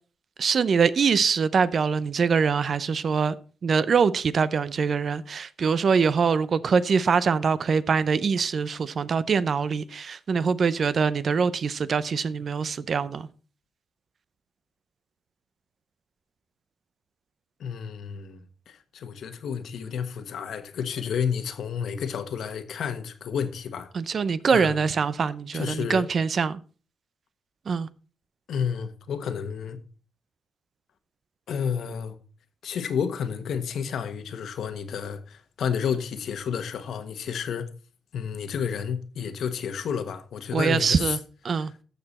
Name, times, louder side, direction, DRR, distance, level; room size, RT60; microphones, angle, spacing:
voice 1, 0.4-3.4 3.6-13.3 23.9-26.6 27.7-27.9 40.5-41.2 41.4-41.7, right 5 dB, 45° right, 0.6 m, -23 dB
voice 2, 17.6-23.9 24.5-24.8 25.5-26.1 28.5-29.8 31.5-32.1 32.6-37.7 38.1-41.0, left 7 dB, 75° left, 1.3 m, -31 dB
14.0 x 6.8 x 4.2 m
wide cardioid pair, 140°, 0 cm